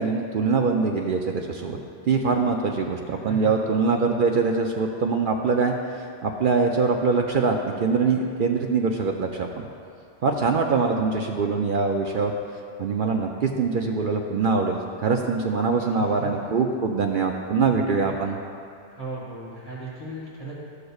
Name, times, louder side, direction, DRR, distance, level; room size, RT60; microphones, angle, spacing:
voice 1, 0.0-1.8 2.1-5.7 6.2-9.6 10.2-12.3 12.8-18.4, right 4 dB, 60° right, 2 dB, 0.6 m, -23 dB
voice 2, 3.1-3.7 15.7-16.5 18.0-18.1 18.9-20.5, right 3 dB, 40° right, -7 dB, 1.8 m, -37 dB
13.5 x 6.5 x 2.4 m, 2.4 s
omnidirectional pair, 1.2 m